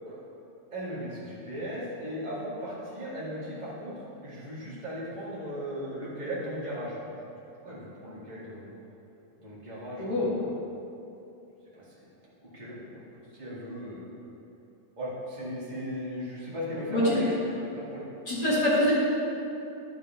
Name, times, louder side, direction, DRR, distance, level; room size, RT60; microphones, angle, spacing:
voice 1, 0.7-3.9 4.2-7.1 7.6-8.8 9.4-10.5 11.7-12.1 12.4-13.0 13.3-14.1 15.0-18.1, equal, 15° right, -8 dB, 1.7 m, -37 dB
voice 2, 18.3-18.9, left 1 dB, 35° left, -9 dB, 2.1 m, -24 dB
10.5 x 7.3 x 4.4 m, 2.8 s
omnidirectional pair, 3.8 m